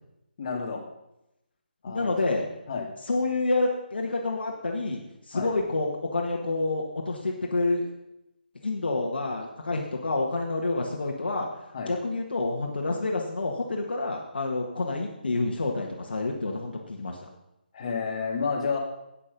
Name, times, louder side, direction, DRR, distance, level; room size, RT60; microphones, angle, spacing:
voice 1, 0.4-0.8 1.8-2.1 2.7-2.9 5.3-5.5 11.7-11.9 17.7-18.8, left 5 dB, 40° left, 1 dB, 2.2 m, -30 dB
voice 2, 1.9-2.4 3.1-5.0 5.3-7.9 8.6-11.5 11.9-17.2, left 2 dB, 70° left, 0 dB, 1.7 m, -28 dB
9.8 x 8.9 x 5.3 m, 0.88 s
figure-of-eight pair, 160°, 6 cm